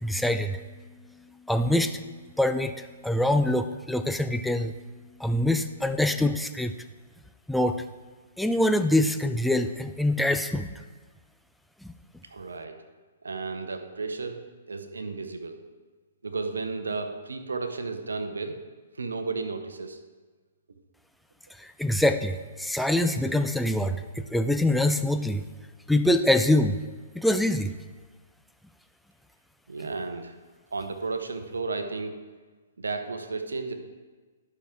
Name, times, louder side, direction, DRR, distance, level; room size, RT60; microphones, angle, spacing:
voice 1, 0.0-0.6 1.5-2.0 2.4-4.7 5.2-6.7 7.5-7.8 8.4-10.7 11.8-11.9 21.6-25.4 25.9-26.8 27.2-27.7, left 1 dB, ahead, 8 dB, 0.4 m, -24 dB
voice 2, 12.3-12.7 13.2-14.4 14.7-15.6 16.2-18.5 19.0-20.0 29.7-30.3 30.7-32.1 32.8-33.7, right 4 dB, 80° right, 7 dB, 0.9 m, -33 dB
11.5 x 5.9 x 3.7 m, 1.4 s
hypercardioid pair, 130°, 0 cm